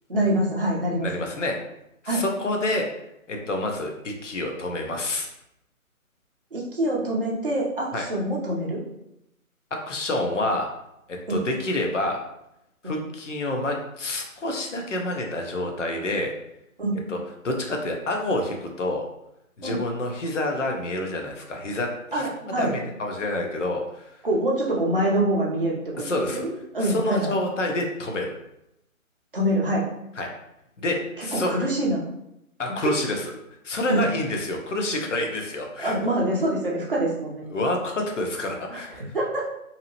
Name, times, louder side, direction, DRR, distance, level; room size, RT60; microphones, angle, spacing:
voice 1, 0.1-1.1 2.1-2.2 6.5-8.8 11.3-11.4 12.8-13.0 16.8-17.0 19.6-19.8 22.1-22.7 24.2-25.7 26.1-27.3 29.3-29.9 31.2-32.0 33.9-34.1 35.8-37.4 38.7-39.5, right 1 dB, 40° right, -4 dB, 0.6 m, -25 dB
voice 2, 1.0-1.5 2.0-2.9 3.3-5.3 7.9-8.0 9.7-10.7 11.1-12.2 12.8-16.3 17.1-17.2 17.4-19.1 19.6-24.2 26.0-26.5 26.8-28.3 30.2-30.3 30.8-31.5 32.6-33.3 33.6-36.0 37.5-39.0, left 1 dB, 55° left, 2 dB, 0.6 m, -28 dB
2.7 x 2.0 x 2.7 m, 0.83 s
figure-of-eight pair, 160°, 43 cm